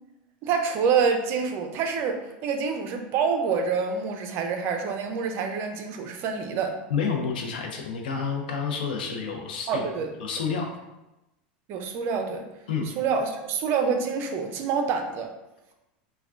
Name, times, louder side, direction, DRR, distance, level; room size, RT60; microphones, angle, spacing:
voice 1, 0.4-6.8 9.7-10.1 11.7-12.4 13.0-15.3, right 5 dB, 50° right, 5 dB, 0.5 m, -27 dB
voice 2, 6.9-9.8 10.2-10.7 12.7-12.9, left 5 dB, 90° left, 2 dB, 0.5 m, -29 dB
3.4 x 2.2 x 2.3 m, 0.95 s
supercardioid pair, 115°, 5 cm